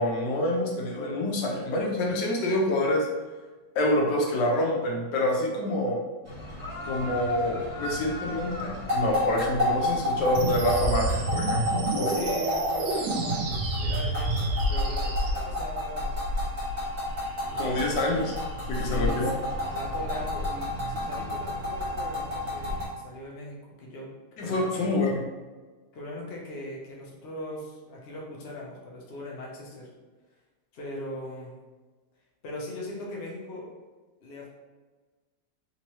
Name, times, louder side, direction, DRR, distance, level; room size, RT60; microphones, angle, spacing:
voice 1, 0.0-3.1 3.7-6.0 6.8-12.2 17.6-18.3 18.7-19.3 24.4-25.2, left 1 dB, 75° left, -1 dB, 1.3 m, -27 dB
sound 1, 6.3-22.9, left 1 dB, 40° right, 1.8 m, -31 dB
sound 2, 10.3-15.3, right 2 dB, 80° right, 1.3 m, -28 dB
voice 2, 12.0-16.1 17.4-17.8 18.7-24.1 24.4-24.9 25.9-29.9 30.7-31.5 32.4-33.7 34.2-34.5, left 1 dB, 50° left, -3 dB, 0.8 m, -40 dB
3.6 x 2.9 x 3.0 m, 1.3 s
omnidirectional pair, 1.9 m